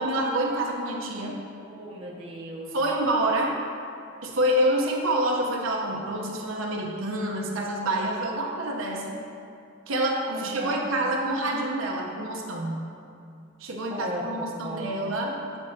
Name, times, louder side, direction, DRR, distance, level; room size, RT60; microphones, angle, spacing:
voice 1, 0.0-1.3 2.7-3.6 4.2-9.2 9.9-12.8 13.6-15.3, right 1 dB, 70° right, -1 dB, 0.8 m, -27 dB
voice 2, 1.6-2.8 10.3-10.8 13.9-14.9, right 1 dB, 25° right, -4 dB, 0.8 m, -36 dB
8.1 x 6.8 x 2.7 m, 2.5 s
head